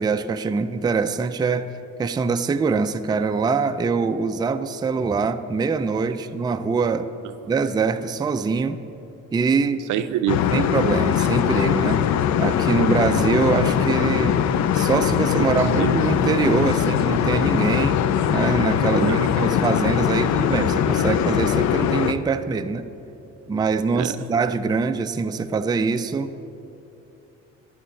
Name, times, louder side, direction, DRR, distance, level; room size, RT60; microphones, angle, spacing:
voice 1, 0.0-1.7 2.0-7.1 7.5-8.8 9.3-9.9 10.5-12.1 12.4-14.4 14.7-18.0 18.3-22.9 23.5-26.3, right 4 dB, 15° right, 9 dB, 0.3 m, -23 dB
voice 2, 9.9-10.7 15.4-16.0 19.0-19.3 24.0-24.2, right 11 dB, 80° right, 11 dB, 0.6 m, -26 dB
sound 1, 10.3-22.1, left 9 dB, 65° left, 0.5 m, -21 dB
11.5 x 4.2 x 7.7 m, 2.8 s
cardioid pair, 90°, 30 cm